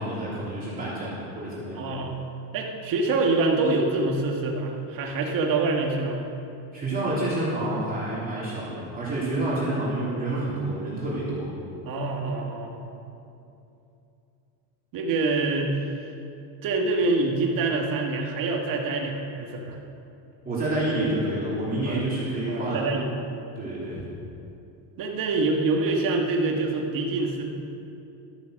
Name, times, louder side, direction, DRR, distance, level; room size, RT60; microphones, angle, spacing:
voice 1, 0.0-1.8 6.7-11.5 20.4-22.8 23.5-24.0, right 1 dB, 20° right, -8 dB, 3.2 m, -28 dB
voice 2, 1.7-2.2 2.5-6.2 11.8-12.9 14.9-16.1 16.6-19.8 21.9-22.1 22.5-23.2 25.0-27.4, right 3 dB, 45° right, 1 dB, 1.8 m, -26 dB
13.0 x 9.3 x 6.5 m, 2.7 s
cardioid pair, 165°, 49 cm